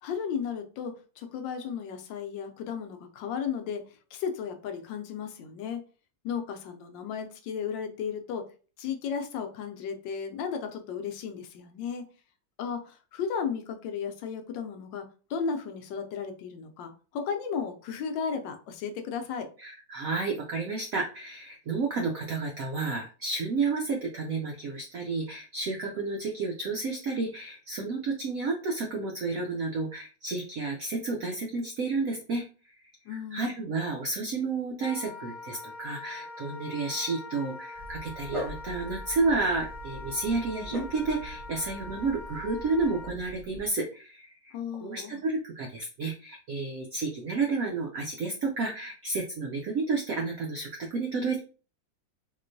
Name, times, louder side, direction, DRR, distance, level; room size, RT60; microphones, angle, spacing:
voice 1, 0.0-3.8 4.1-5.9 6.2-8.5 8.8-12.1 12.6-19.5 33.1-33.6 44.5-45.2, left 6 dB, 75° left, 6 dB, 1.2 m, -34 dB
voice 2, 19.6-32.7 33.1-44.5 44.8-51.4, right 3 dB, 75° right, 0 dB, 0.7 m, -31 dB
Wind instrument woodwind instrument, 34.8-43.2, left 3 dB, 60° left, 1.0 m, -43 dB
Dog, 37.8-43.7, equal, 50° right, 0.3 m, -42 dB
3.7 x 2.9 x 2.6 m, 0.37 s
omnidirectional pair, 2.1 m